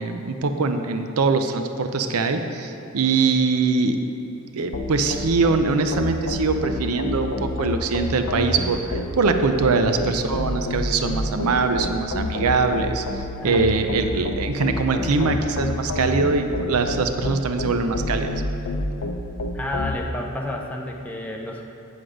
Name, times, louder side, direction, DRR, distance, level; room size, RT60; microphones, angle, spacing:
voice 1, 0.0-4.0 4.5-13.0 13.4-18.4, right 4 dB, 85° right, 7 dB, 0.6 m, -22 dB
sound 1, 4.7-20.0, left 2 dB, 60° left, 0.6 m, -29 dB
voice 2, 19.5-21.6, left 1 dB, 5° left, -1 dB, 0.6 m, -30 dB
8.0 x 7.8 x 5.0 m, 2.8 s
head